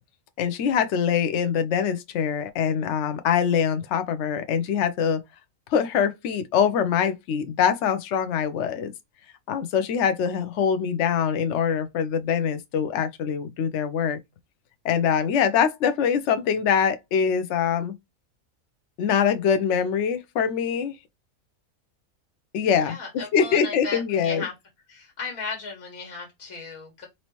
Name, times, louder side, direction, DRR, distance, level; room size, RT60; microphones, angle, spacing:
voice 1, 0.4-5.2 5.7-8.9 9.5-14.2 14.8-17.9 19.0-20.9 22.5-23.0 23.3-24.5, left 7 dB, 65° left, 0.8 m, -23 dB
voice 2, 22.8-24.5 24.9-27.1, left 4 dB, 80° left, 1.8 m, -35 dB
4.3 x 2.7 x 3.0 m
omnidirectional pair, 1.5 m